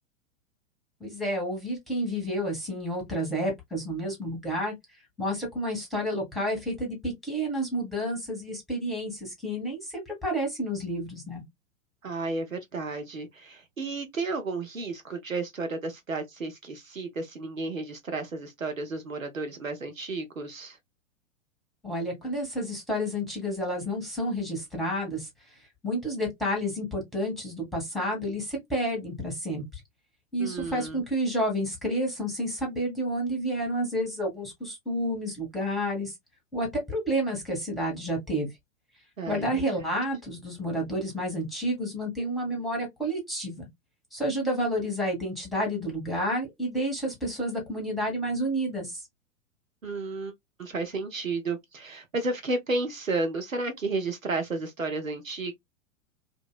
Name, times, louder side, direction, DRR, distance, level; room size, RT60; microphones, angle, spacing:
voice 1, 1.0-4.7 5.2-11.4 21.8-25.3 25.8-29.8 30.3-36.1 36.5-38.5 39.3-43.7 44.1-49.0, equal, ahead, 1.6 m, -30 dB
voice 2, 12.0-20.8 30.4-31.0 39.2-39.9 49.8-50.3 50.6-55.5, right 3 dB, 90° right, 0.8 m, -32 dB
2.8 x 2.7 x 2.3 m
figure-of-eight pair, 105°, 39 cm